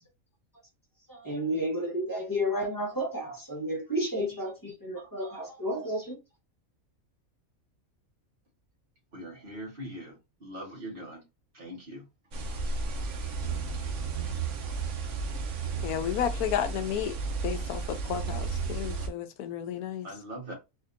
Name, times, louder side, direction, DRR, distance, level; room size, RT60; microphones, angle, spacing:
voice 1, 1.1-6.2, equal, 15° left, 1.1 m, -31 dB
voice 2, 9.1-11.2 11.5-12.0 20.0-20.5, right 1 dB, 40° right, 1.7 m, -41 dB
sound 1, 12.3-19.1, right 4 dB, 60° right, 1.0 m, -33 dB
voice 3, 15.8-17.2 17.4-20.1, left 9 dB, 85° left, 1.1 m, -32 dB
4.2 x 2.7 x 2.5 m
omnidirectional pair, 1.5 m